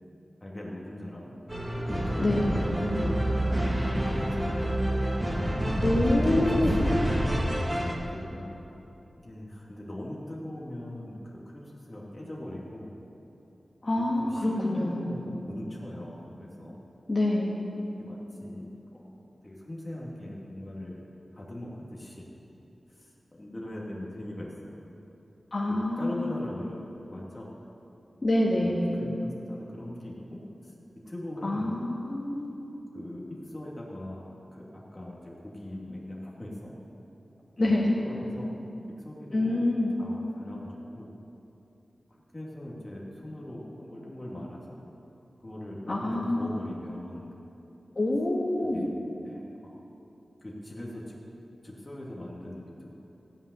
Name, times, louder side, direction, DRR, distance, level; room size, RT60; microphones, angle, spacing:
voice 1, 0.4-1.3 1.9-5.0 6.1-8.5 9.2-12.9 13.9-16.7 18.0-19.1 19.4-21.0 21.3-22.2 22.9-24.8 25.7-27.5 28.6-30.7 31.0-31.7 32.9-34.3 34.5-36.7 37.6-38.5 38.8-39.7 40.0-41.1 42.1-44.8 45.4-47.3 48.7-49.0 49.2-49.8 50.4-51.2 51.6-52.9, left 1 dB, 25° left, -4 dB, 2.3 m, -41 dB
sound 1, 1.5-7.9, equal, 15° right, 1.7 m, -27 dB
voice 2, 2.2-2.6 5.8-6.8 13.8-15.2 17.1-17.6 25.5-26.3 28.2-28.9 31.4-32.6 37.6-37.9 39.3-39.9 45.9-46.5 47.9-48.9, left 1 dB, 45° left, -5 dB, 2.2 m, -26 dB
14.5 x 5.5 x 9.3 m, 2.9 s
wide cardioid pair, 65°, 0 cm